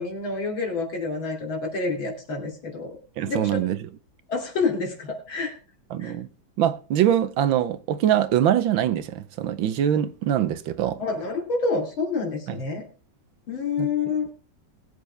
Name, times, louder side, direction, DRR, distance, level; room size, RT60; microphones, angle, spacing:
voice 1, 0.0-3.0 3.3-3.5 4.3-5.5 6.0-6.1 11.0-12.8 13.5-14.3, left 4 dB, 85° left, 3.6 m, -28 dB
voice 2, 3.2-3.9 5.9-6.3 6.6-11.0 12.5-12.6 13.8-13.9, right 10 dB, 80° right, 1.6 m, -23 dB
20.5 x 8.1 x 3.4 m
omnidirectional pair, 2.1 m